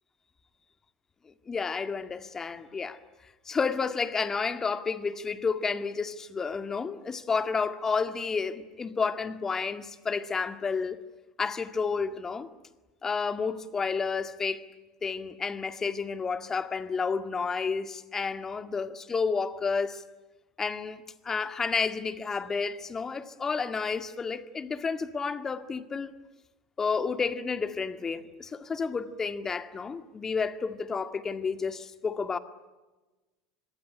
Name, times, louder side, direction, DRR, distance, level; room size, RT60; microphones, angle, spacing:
voice 1, 1.5-3.0 3.5-11.0 11.4-12.5 13.0-14.6 15.0-20.0 20.6-21.0 21.2-26.1 26.8-32.4, left 5 dB, 25° left, 2.0 m, -31 dB
25.5 x 22.5 x 9.9 m
figure-of-eight pair, 75°, 2 cm